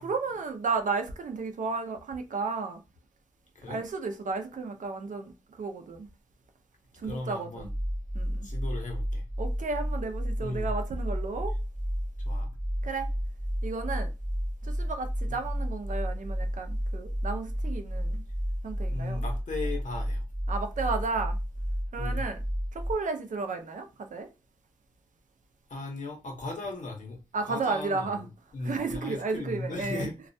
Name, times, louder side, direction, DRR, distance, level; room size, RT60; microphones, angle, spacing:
voice 1, 0.0-2.8 3.7-6.1 7.0-7.7 8.1-8.5 9.4-11.5 12.8-13.1 13.6-14.1 14.6-18.2 18.6-19.2 20.5-21.4 21.9-22.4 22.7-24.3 27.3-28.3 28.6-30.1, right 4 dB, 70° right, 0.5 m, -33 dB
voice 2, 7.0-7.7 8.4-9.2 10.4-10.7 12.2-12.5 15.3-15.4 18.9-20.2 22.0-22.3 25.7-27.2 27.5-28.3 28.5-30.1, left 2 dB, 70° left, 0.9 m, -37 dB
sound 1, 7.6-22.9, equal, 5° right, 0.4 m, -32 dB
2.3 x 2.1 x 2.6 m
cardioid pair, 40°, 13 cm